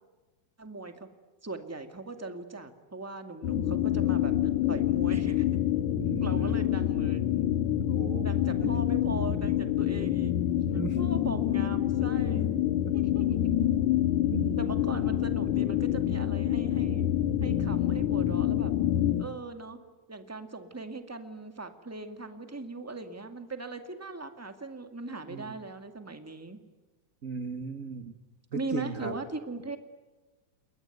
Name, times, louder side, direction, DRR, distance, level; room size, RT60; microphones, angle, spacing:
voice 1, 0.6-1.1 1.4-5.6 6.2-7.3 8.2-10.3 10.7-12.5 12.9-13.5 14.6-17.0 17.4-18.7 19.2-19.8 20.1-26.6 28.5-29.8, right 2 dB, 5° right, 7 dB, 1.6 m, -39 dB
sound 1, 3.4-19.3, left 12 dB, 75° left, 2.5 m, -27 dB
voice 2, 3.5-4.0 6.0-6.6 7.8-8.3 8.6-8.8 10.7-11.1 12.8-12.9 14.3-14.6 25.3-25.6 27.2-28.2 28.5-29.1, right 5 dB, 45° right, 8 dB, 1.0 m, -37 dB
28.5 x 22.5 x 9.3 m, 1.2 s
omnidirectional pair, 3.5 m